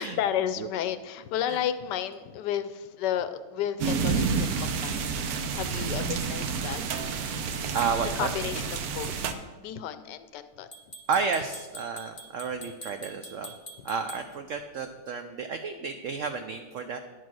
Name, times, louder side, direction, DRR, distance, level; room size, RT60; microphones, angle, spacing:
voice 1, 0.0-5.1 5.5-6.8 8.2-9.3 9.6-10.7 13.8-13.9, left 10 dB, 75° left, 11 dB, 1.1 m, -32 dB
sound 1, 3.8-9.3, right 5 dB, 65° right, 1.1 m, -29 dB
sound 2, 4.9-5.1 7.8-8.0 10.7-14.3, right 1 dB, 30° left, 0.9 m, -45 dB
voice 2, 7.7-8.3 11.1-13.5 13.8-17.0, right 5 dB, 90° right, 7 dB, 0.6 m, -31 dB
11.0 x 4.7 x 6.1 m, 1.3 s
omnidirectional pair, 2.0 m